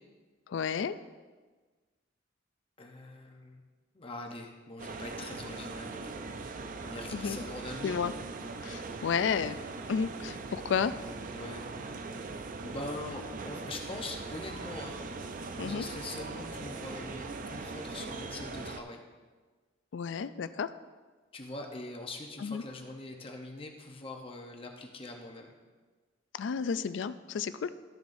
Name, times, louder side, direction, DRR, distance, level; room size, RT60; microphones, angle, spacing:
voice 1, 0.5-1.0 7.1-7.4 7.8-8.1 8.6-9.6 9.9-10.9 15.6-15.9 19.9-20.7 22.4-22.6 26.3-27.7, left 6 dB, 70° left, 13 dB, 0.4 m, -32 dB
voice 2, 2.8-3.6 3.9-6.1 6.8-8.0 11.3-11.7 12.6-15.0 15.6-19.0 21.3-25.5, left 2 dB, 30° left, 2 dB, 0.8 m, -43 dB
sound 1, 4.8-18.8, right 3 dB, 45° right, 0.5 m, -40 dB
13.0 x 7.1 x 2.6 m, 1.4 s
head